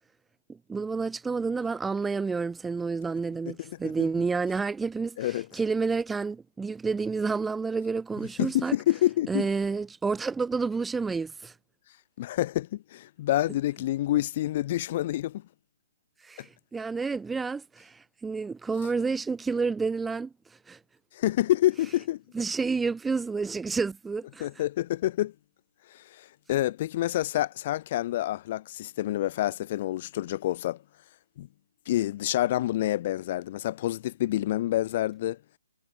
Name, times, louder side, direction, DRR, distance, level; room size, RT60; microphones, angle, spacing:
voice 1, 0.5-8.7 9.3-11.5 16.2-20.3 20.7-20.8 22.3-24.5, right 4 dB, 5° right, 0.5 m, -29 dB
voice 2, 3.5-4.1 5.2-5.5 8.4-9.5 12.2-15.4 16.4-16.5 21.1-22.2 24.4-25.3 25.9-30.8 31.4-31.5 31.9-35.4, left 14 dB, 35° left, 0.7 m, -28 dB
hypercardioid pair, 160°, 0 cm